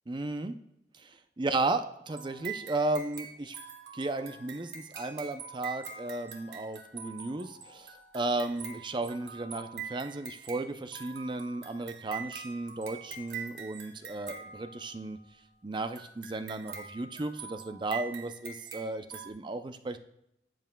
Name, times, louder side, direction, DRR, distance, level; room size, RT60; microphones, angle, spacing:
voice 1, 0.1-0.5 1.0-3.6 3.9-15.2 15.6-20.0, right 2 dB, 25° right, 9 dB, 0.5 m, -34 dB
sound 1, 2.1-15.2 16.0-19.3, right 7 dB, 80° right, 1.2 m, -44 dB
12.0 x 7.9 x 2.3 m, 0.80 s
head